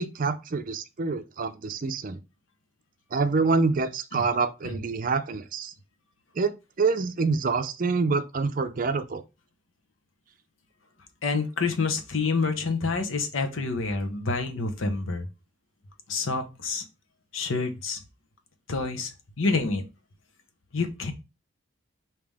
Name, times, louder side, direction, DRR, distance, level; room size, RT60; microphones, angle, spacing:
voice 1, 0.0-2.2 3.1-5.7 6.4-9.2, right 4 dB, 45° right, 0.5 m, -26 dB
voice 2, 11.2-15.3 16.1-16.8 17.3-18.0 18.7-19.8 20.7-21.1, left 4 dB, 80° left, 0.9 m, -28 dB
5.2 x 2.9 x 3.4 m
head